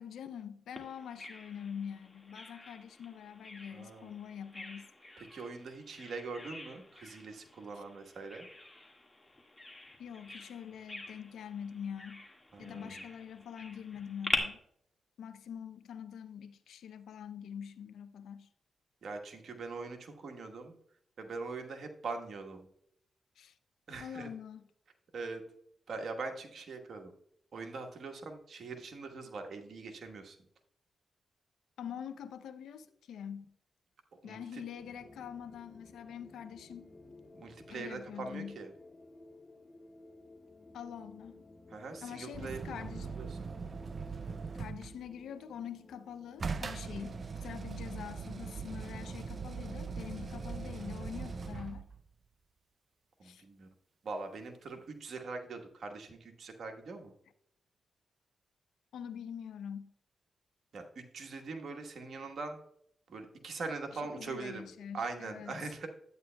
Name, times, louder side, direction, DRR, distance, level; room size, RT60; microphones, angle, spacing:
voice 1, 0.0-4.9 7.8-7.9 10.0-12.3 12.6-14.6 15.2-18.5 23.4-23.5 24.0-24.6 31.8-33.5 34.2-36.9 37.7-38.6 40.7-41.5 42.0-43.1 44.5-51.9 53.2-53.4 58.9-59.9 63.9-65.6, left 8 dB, 90° left, 0.5 m, -45 dB
Bird vocalization bird call bird song, 0.8-14.4, left 2 dB, 20° left, 1.7 m, -44 dB
voice 2, 3.7-4.1 5.2-8.5 12.5-13.0 19.0-20.7 21.2-22.7 23.9-24.3 25.1-25.4 25.9-27.1 27.5-30.4 34.2-34.6 37.3-38.7 41.7-42.6 43.0-43.5 53.2-53.7 54.0-57.1 60.7-62.6 63.1-64.7 64.9-65.9, right 4 dB, 65° right, 1.2 m, -42 dB
sound 1, 34.7-51.6, left 2 dB, 40° left, 1.6 m, -56 dB
sound 2, 42.3-45.0 46.4-52.0 54.8-54.9, right 5 dB, 50° right, 0.4 m, -40 dB
11.0 x 8.7 x 2.2 m
cardioid pair, 65°, 0 cm